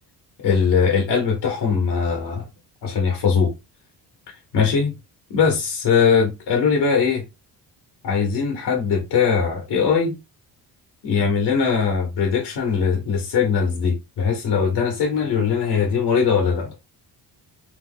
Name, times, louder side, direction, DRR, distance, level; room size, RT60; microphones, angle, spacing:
voice 1, 0.4-2.4 2.8-3.5 4.5-4.9 5.3-7.2 8.0-10.2 11.0-16.7, left 6 dB, 75° left, 1.0 m, -20 dB
2.8 x 2.1 x 3.5 m
cardioid pair, 105°, 41 cm